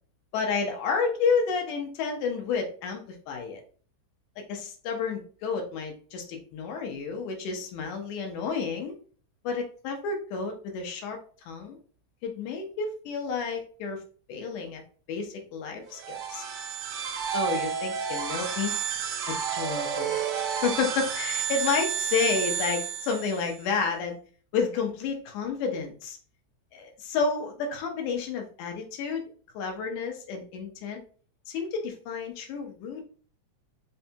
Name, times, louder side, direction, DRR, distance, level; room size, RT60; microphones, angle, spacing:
voice 1, 0.3-3.6 4.5-8.9 9.4-11.2 11.5-11.8 12.2-14.0 14.3-14.8 15.1-16.4 17.3-18.7 19.3-20.2 20.6-24.2 24.5-26.2 26.7-29.2 29.5-31.0 31.5-33.0, left 5 dB, 90° left, 3 dB, 2.3 m, -30 dB
sound 1, 15.9-23.6, right 8 dB, 80° right, 1.9 m, -31 dB
5.3 x 2.2 x 2.7 m, 0.42 s
omnidirectional pair, 3.4 m